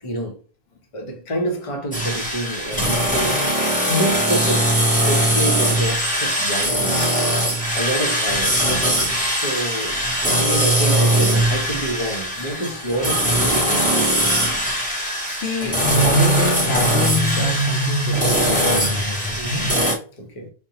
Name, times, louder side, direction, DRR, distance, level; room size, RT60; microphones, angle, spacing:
voice 1, 0.0-0.4 0.9-3.6 3.9-4.7 5.0-7.2 7.7-8.8 9.3-14.2 19.4-19.8 20.2-20.5, right 1 dB, 35° left, 0.9 m, -28 dB
sound 1, 1.9-20.0, right 1 dB, 10° left, 1.1 m, -21 dB
voice 2, 15.3-19.9, equal, 70° left, 0.9 m, -23 dB
5.0 x 2.2 x 2.8 m
omnidirectional pair, 1.1 m